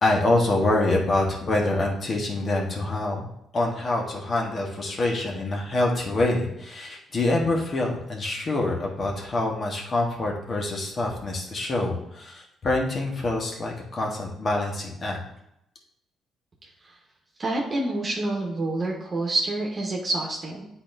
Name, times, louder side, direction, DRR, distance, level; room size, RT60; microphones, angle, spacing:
voice 1, 0.0-3.2 3.5-15.2, left 2 dB, 45° left, 0 dB, 1.4 m, -25 dB
voice 2, 17.4-20.7, right 2 dB, 40° right, -2 dB, 1.2 m, -27 dB
8.4 x 4.2 x 2.7 m, 0.80 s
cardioid pair, 90°, 0 cm